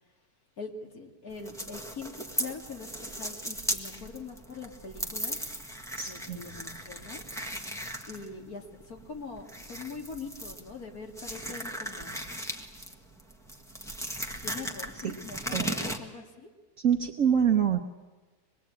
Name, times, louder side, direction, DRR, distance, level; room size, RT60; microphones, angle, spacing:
voice 1, 0.6-5.4 6.1-7.2 8.1-12.2 14.4-16.5, left 4 dB, 65° left, 1 dB, 2.9 m, -43 dB
sound 1, 1.3-16.0, right 1 dB, ahead, 1.4 m, -37 dB
voice 2, 6.0-6.4 15.0-15.2 15.5-15.7 16.8-17.8, right 8 dB, 60° right, 2 dB, 1.3 m, -25 dB
25.5 x 20.5 x 8.8 m, 1.2 s
omnidirectional pair, 1.7 m